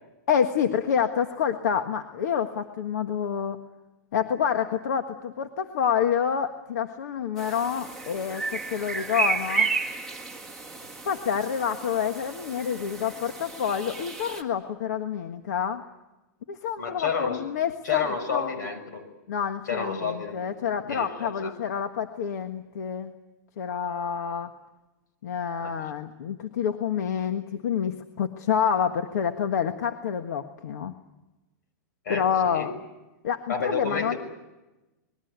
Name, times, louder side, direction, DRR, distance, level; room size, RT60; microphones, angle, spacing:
voice 1, 0.3-3.6 4.1-9.7 11.0-15.8 16.5-18.5 19.3-23.1 23.6-24.5 25.2-30.9 32.1-32.7 33.2-34.2, left 7 dB, 65° left, 7 dB, 1.6 m, -28 dB
sound 1, 7.4-14.4, right 4 dB, 5° left, 1.8 m, -32 dB
voice 2, 16.8-17.4 17.8-19.1 19.7-20.4 20.8-21.5 25.6-25.7 32.0-32.7 33.5-34.2, left 5 dB, 90° left, 10 dB, 6.2 m, -30 dB
27.5 x 21.5 x 8.2 m, 1.0 s
supercardioid pair, 175°, 10 cm